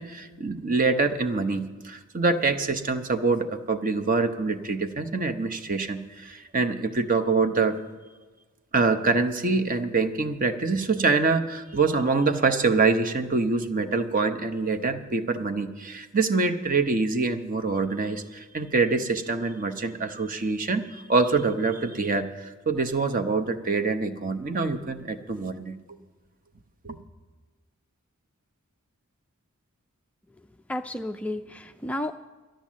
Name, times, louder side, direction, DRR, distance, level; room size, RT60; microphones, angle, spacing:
voice 1, 0.0-7.8 8.7-25.8 26.8-27.0, right 4 dB, 40° right, 8 dB, 0.8 m, -25 dB
voice 2, 30.7-32.1, left 1 dB, 5° left, 6 dB, 0.3 m, -32 dB
12.0 x 10.5 x 7.4 m, 1.3 s
head